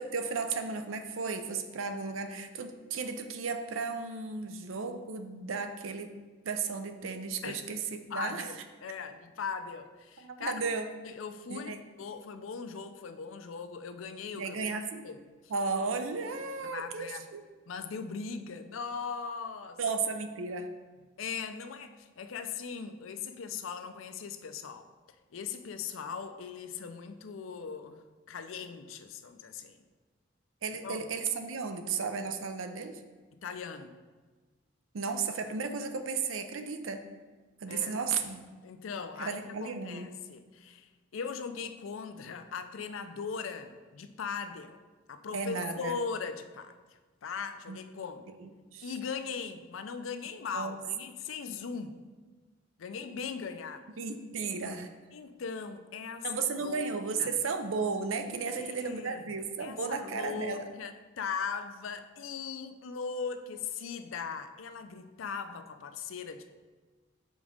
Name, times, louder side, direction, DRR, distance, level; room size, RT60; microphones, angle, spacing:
voice 1, 0.0-6.2 6.4-7.8 8.1-8.5 10.2-10.9 11.5-11.8 14.4-15.1 15.5-17.4 19.8-20.7 30.6-33.0 34.9-37.1 37.6-38.5 39.2-40.1 45.3-46.0 47.7-47.8 48.4-48.9 50.5-50.8 54.0-54.9 56.2-60.7, right 4 dB, 90° right, 8 dB, 0.5 m, -34 dB
voice 2, 8.1-10.5 11.0-14.6 15.0-15.5 16.6-17.3 17.7-19.8 21.2-24.9 25.3-29.8 30.7-31.0 33.3-34.0 37.7-38.0 38.6-44.8 45.1-46.8 47.2-48.3 48.8-52.0 52.8-53.9 55.1-57.4 58.4-59.2 59.6-66.5, left 5 dB, 90° left, 9 dB, 0.5 m, -39 dB
5.2 x 4.0 x 5.0 m, 1.3 s
head